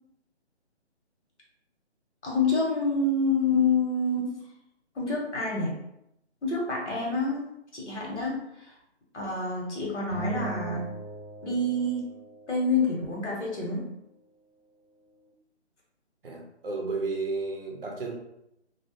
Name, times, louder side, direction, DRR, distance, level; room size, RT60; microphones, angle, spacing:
voice 1, 2.2-4.4 4.9-5.7 6.4-7.4 7.7-8.7 9.1-10.8 11.4-12.0 12.5-13.9, left 3 dB, 75° left, -3 dB, 1.2 m, -27 dB
sound 1, 10.1-12.7, right 2 dB, 15° left, 0.5 m, -39 dB
voice 2, 16.2-18.2, right 3 dB, 55° right, 0 dB, 0.6 m, -32 dB
2.3 x 2.1 x 2.8 m, 0.82 s
hypercardioid pair, 165°, 35 cm